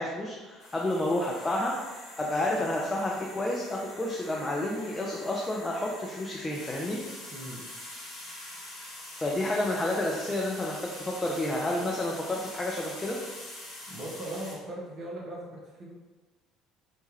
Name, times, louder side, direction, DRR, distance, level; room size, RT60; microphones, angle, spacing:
voice 1, 0.0-1.9 2.2-7.0 9.1-13.2, left 1 dB, 20° left, -2 dB, 0.4 m, -30 dB
sound 1, 0.6-14.6, left 1 dB, 55° left, 1.2 m, -45 dB
voice 2, 7.3-7.6 13.9-15.9, right 1 dB, 45° right, -4 dB, 0.7 m, -39 dB
3.0 x 2.2 x 2.9 m, 1.3 s
figure-of-eight pair, 60°, 0 cm